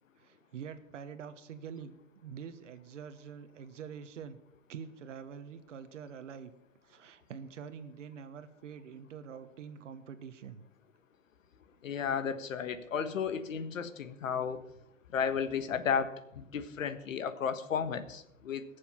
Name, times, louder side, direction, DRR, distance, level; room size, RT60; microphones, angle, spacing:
voice 1, 0.2-4.4 4.7-6.5 6.8-10.6, right 7 dB, 65° right, 11 dB, 1.4 m, -46 dB
voice 2, 11.8-14.6 15.1-18.6, left 7 dB, 80° left, 11 dB, 1.4 m, -33 dB
19.5 x 7.1 x 5.7 m, 0.81 s
hypercardioid pair, 155°, 39 cm